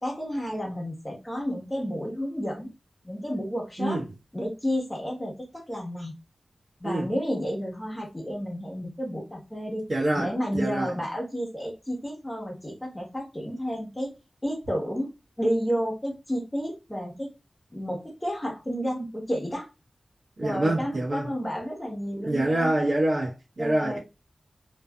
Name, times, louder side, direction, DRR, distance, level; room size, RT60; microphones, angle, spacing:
voice 1, 0.0-2.7 3.0-4.0 4.3-6.1 6.8-9.9 10.2-14.1 14.4-15.1 15.4-17.3 17.7-19.7 20.4-22.7 23.6-24.0, equal, 20° left, 1.2 m, -31 dB
voice 2, 3.8-4.1 6.8-7.1 9.9-10.9 20.4-21.3 22.2-24.0, right 1 dB, 55° right, 1.0 m, -26 dB
2.7 x 2.4 x 2.3 m
wide cardioid pair, 70°, 0 cm